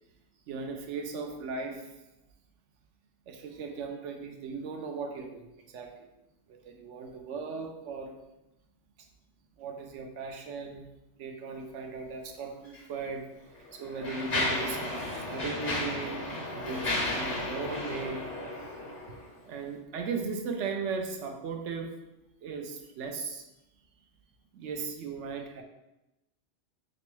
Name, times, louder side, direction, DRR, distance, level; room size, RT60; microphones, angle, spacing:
voice 1, 0.5-1.9 3.3-6.1 6.5-8.2 9.6-10.9 11.2-13.3 13.7-16.2 16.5-18.2 19.5-22.0 22.4-23.5 24.5-25.6, right 4 dB, 80° right, 3 dB, 0.9 m, -37 dB
Mechanisms, 12.6-12.8 13.5-19.3, left 2 dB, 40° left, 0.9 m, -33 dB
3.4 x 3.0 x 3.0 m, 0.95 s
omnidirectional pair, 1.2 m